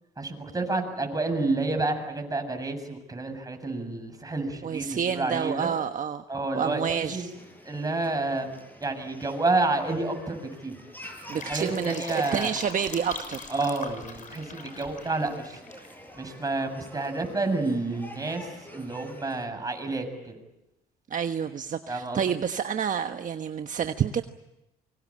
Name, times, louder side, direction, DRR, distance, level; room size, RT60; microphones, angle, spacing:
voice 1, 0.2-5.7 6.3-7.3 7.7-8.5 8.8-10.8 11.3-12.5 13.5-15.6 16.1-20.4 21.9-22.4, right 2 dB, 20° right, 5 dB, 7.3 m, -29 dB
voice 2, 4.6-6.2 6.5-7.3 11.3-13.5 21.1-24.2, right 7 dB, 45° right, 7 dB, 1.3 m, -29 dB
sound 1, 7.2-19.5, left 1 dB, 10° left, 7.8 m, -47 dB
Fill (with liquid), 11.1-15.9 16.2-16.3, left 4 dB, 45° left, 6.4 m, -41 dB
27.0 x 24.5 x 8.7 m, 0.91 s
supercardioid pair, 85°, 19 cm